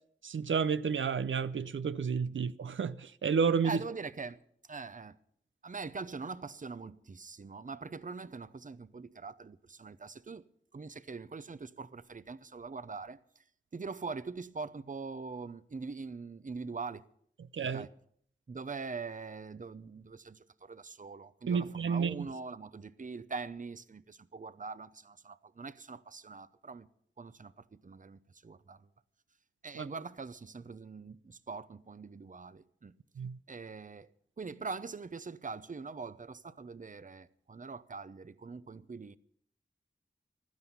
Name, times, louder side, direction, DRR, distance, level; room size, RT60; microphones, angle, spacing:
voice 1, 0.2-3.8 17.5-17.9 21.5-22.3 29.7-29.9 33.2-33.4, right 6 dB, 85° right, 0.5 m, -31 dB
voice 2, 3.6-4.4 4.7-5.2 5.6-10.4 10.7-13.2 13.7-17.0 17.6-17.9 18.5-26.9 27.2-28.8 29.6-32.9 33.5-34.1 34.4-39.2, right 4 dB, 45° right, 0.7 m, -43 dB
16.0 x 12.5 x 5.5 m
wide cardioid pair, 80°, 20 cm